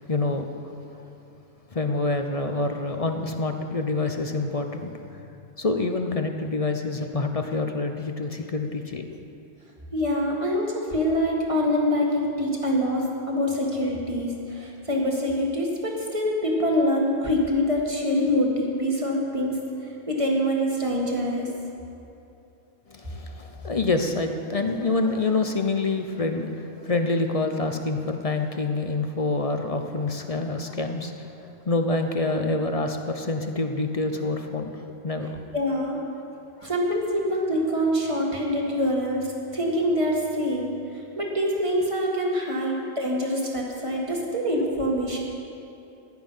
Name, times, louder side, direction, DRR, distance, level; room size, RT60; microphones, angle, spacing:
voice 1, 0.1-0.7 1.7-5.2 5.6-9.0 22.9-35.4 36.6-36.7, left 3 dB, 35° left, 5 dB, 0.7 m, -27 dB
voice 2, 9.9-19.6 20.1-21.5 35.5-36.0 36.6-40.7 41.2-45.2, equal, 25° right, -2 dB, 2.0 m, -25 dB
15.0 x 11.0 x 5.6 m, 2.8 s
omnidirectional pair, 1.3 m